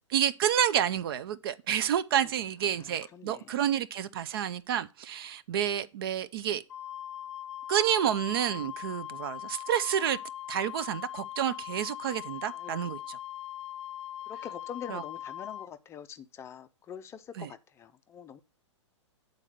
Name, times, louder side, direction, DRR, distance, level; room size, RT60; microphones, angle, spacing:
voice 1, 0.1-6.6 7.7-10.2 10.5-13.2 14.9-15.0 17.4-17.5, right 10 dB, 50° right, 0.5 m, -29 dB
voice 2, 2.8-3.5 12.5-12.9 14.3-18.4, left 8 dB, 15° left, 0.5 m, -45 dB
Wind instrument woodwind instrument, 6.7-15.7, left 12 dB, 70° left, 0.5 m, -41 dB
8.3 x 4.0 x 6.7 m
figure-of-eight pair, 115°, 16 cm